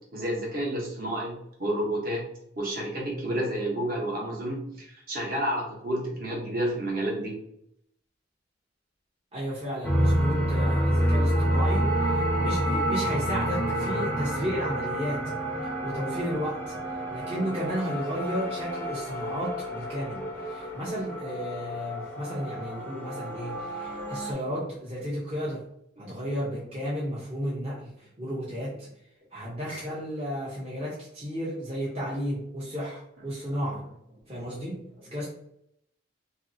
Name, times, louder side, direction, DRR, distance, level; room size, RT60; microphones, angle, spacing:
voice 1, 0.1-2.2 2.6-7.3, right 1 dB, 50° right, -3 dB, 1.0 m, -30 dB
voice 2, 9.3-15.2 15.6-25.6 26.0-28.9 29.3-33.8 34.3-34.8 35.1-35.3, equal, 30° right, -7 dB, 0.7 m, -33 dB
sound 1, 9.8-24.3, equal, 10° left, 0.4 m, -28 dB
2.9 x 2.6 x 2.6 m, 0.74 s
head